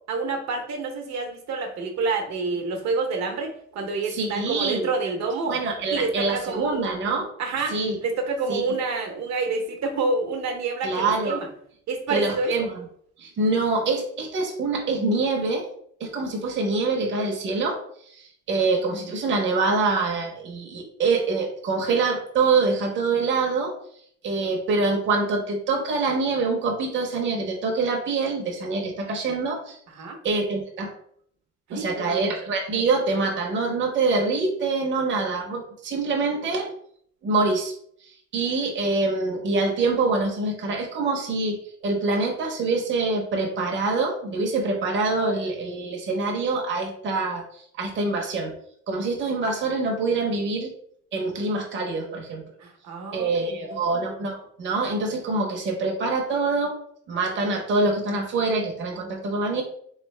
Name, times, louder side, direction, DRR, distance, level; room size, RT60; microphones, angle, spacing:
voice 1, 0.1-5.6 5.9-6.8 7.4-7.7 8.0-11.5 11.9-12.5 29.9-30.2 31.7-32.3 52.6-53.8, right 3 dB, 65° right, 4 dB, 0.9 m, -28 dB
voice 2, 4.1-4.9 5.5-7.3 7.7-8.0 8.5-8.6 10.8-11.4 12.1-12.8 13.2-15.7 16.0-23.7 24.2-29.8 30.2-30.9 31.7-36.7 37.2-37.7 38.0-41.6 41.8-48.5 48.9-50.7 51.1-52.4 53.1-56.8 57.1-59.6, right 3 dB, 40° right, 1 dB, 0.8 m, -25 dB
4.0 x 3.2 x 3.2 m, 0.65 s
cardioid pair, 175°, 29 cm